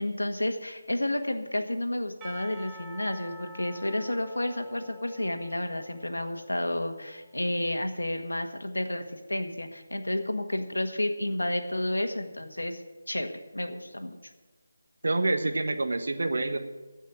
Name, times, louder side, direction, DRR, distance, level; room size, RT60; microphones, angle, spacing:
voice 1, 0.0-12.8 13.1-14.2, left 1 dB, 90° left, 6 dB, 1.6 m, -31 dB
Percussion / Church bell, 2.2-7.4, equal, 15° right, 1.5 m, -49 dB
voice 2, 15.0-16.6, right 2 dB, 65° right, 7 dB, 1.3 m, -27 dB
15.5 x 5.6 x 8.9 m, 1.2 s
figure-of-eight pair, 160°, 0 cm